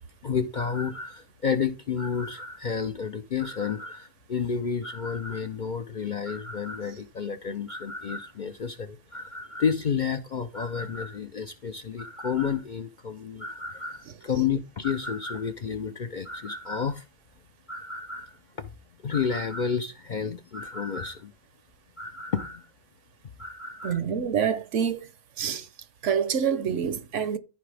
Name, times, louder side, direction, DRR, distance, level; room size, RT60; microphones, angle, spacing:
voice 1, 0.2-17.1 17.7-18.4 19.0-21.3 22.0-22.7 23.4-24.0, left 6 dB, 50° left, 0.6 m, -31 dB
voice 2, 23.8-25.1 25.4-25.7 26.0-27.4, right 7 dB, 70° right, 1.1 m, -26 dB
14.0 x 4.8 x 3.3 m
omnidirectional pair, 1.3 m